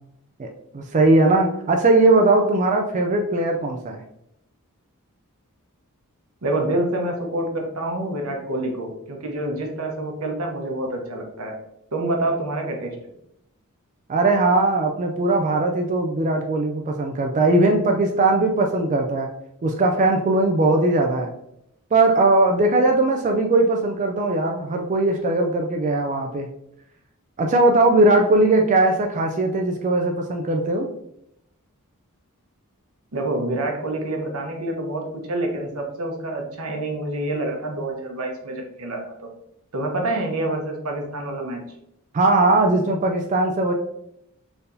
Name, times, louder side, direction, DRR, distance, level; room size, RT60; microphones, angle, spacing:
voice 1, 0.7-4.0 14.1-19.3 19.6-21.3 21.9-26.5 27.4-30.9 42.1-43.7, right 2 dB, 35° right, 2 dB, 0.4 m, -19 dB
voice 2, 6.4-11.5 11.9-12.9 33.1-35.0 35.3-39.3 39.7-41.6, right 1 dB, 80° right, 1 dB, 1.0 m, -27 dB
4.4 x 3.4 x 2.6 m, 0.78 s
head